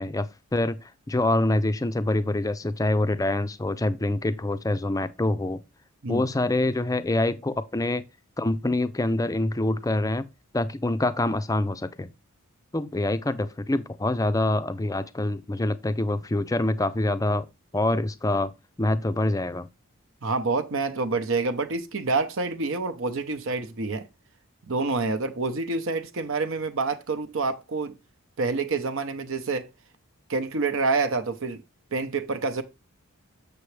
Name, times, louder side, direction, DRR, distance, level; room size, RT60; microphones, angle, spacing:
voice 1, 0.0-5.6 6.1-8.0 8.4-10.3 10.5-12.1 12.7-17.5 17.7-18.5 18.8-19.7, left 2 dB, 15° left, 0.5 m, -25 dB
voice 2, 20.2-24.1 24.7-27.9 28.4-29.7 30.3-31.6 31.9-32.6, right 3 dB, 60° right, 0.8 m, -27 dB
6.9 x 6.9 x 3.2 m
head